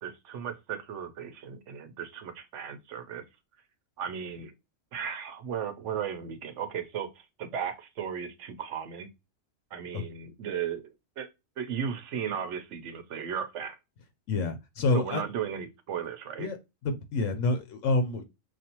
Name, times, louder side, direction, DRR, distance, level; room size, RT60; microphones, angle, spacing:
voice 1, 0.0-3.2 4.0-4.5 4.9-9.1 9.7-11.3 11.6-13.8 14.9-16.5, right 8 dB, 70° right, 1.0 m, -36 dB
voice 2, 14.3-15.2 16.4-16.6 16.8-18.2, left 2 dB, 80° left, 1.0 m, -27 dB
4.7 x 2.5 x 2.9 m
omnidirectional pair, 1.4 m